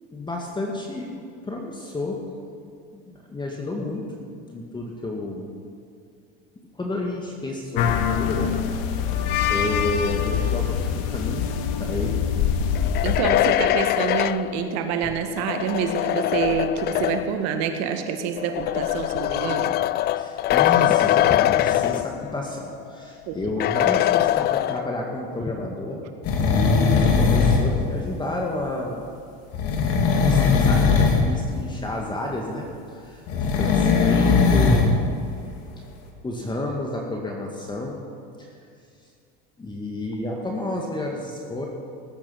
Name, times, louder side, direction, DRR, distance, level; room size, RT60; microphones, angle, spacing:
voice 1, 0.1-2.2 2.9-5.5 6.7-8.5 9.5-11.5 11.8-12.3 20.2-26.0 26.5-29.0 30.1-34.9 36.2-38.0 38.4-38.5 39.6-41.7, left 2 dB, 15° left, 0 dB, 1.9 m, -31 dB
sound 1, 7.8-13.2, left 8 dB, 70° left, 1.3 m, -24 dB
sound 2, 12.7-17.4 18.4-22.5 22.9-23.0 23.6-25.1, left 14 dB, 35° left, 0.4 m, -23 dB
voice 2, 13.0-19.7 23.3-23.4 26.8-26.9, right 7 dB, 60° right, 7 dB, 1.7 m, -27 dB
sound 3, 26.2-27.8 29.5-31.3 33.3-34.9 35.4-35.5, left 4 dB, 50° left, 2.4 m, -19 dB
19.0 x 8.8 x 5.8 m, 2.4 s
supercardioid pair, 105°, 30 cm